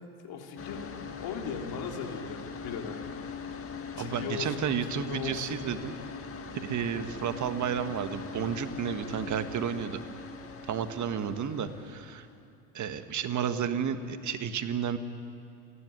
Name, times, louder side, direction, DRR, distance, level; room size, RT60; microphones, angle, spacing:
voice 1, 0.2-3.0 4.0-5.7, left 6 dB, 55° left, 2 dB, 3.7 m, -38 dB
sound 1, 0.6-12.4, left 4 dB, 30° left, 1.9 m, -41 dB
voice 2, 4.0-5.9 6.5-10.0 10.7-12.3 12.7-15.0, right 8 dB, 40° right, 9 dB, 1.7 m, -32 dB
29.0 x 11.5 x 9.8 m, 2.7 s
hypercardioid pair, 75°, 44 cm